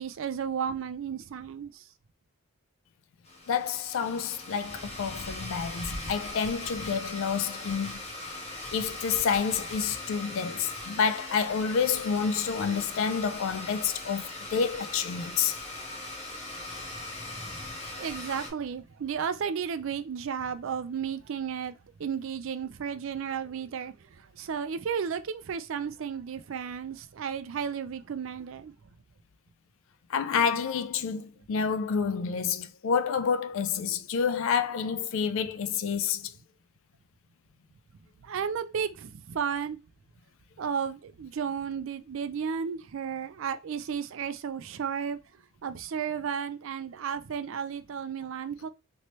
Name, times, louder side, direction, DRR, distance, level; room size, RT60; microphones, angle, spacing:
voice 1, 0.0-1.8 17.9-28.7 38.2-39.8 40.6-45.2 45.6-48.7, right 7 dB, 65° right, 0.4 m, -33 dB
Domestic sounds home sounds, 3.2-18.5, left 2 dB, 30° left, 0.8 m, -40 dB
voice 2, 3.5-8.0 8.7-15.6 30.1-36.3, left 6 dB, 65° left, 0.3 m, -29 dB
3.0 x 2.9 x 3.0 m
head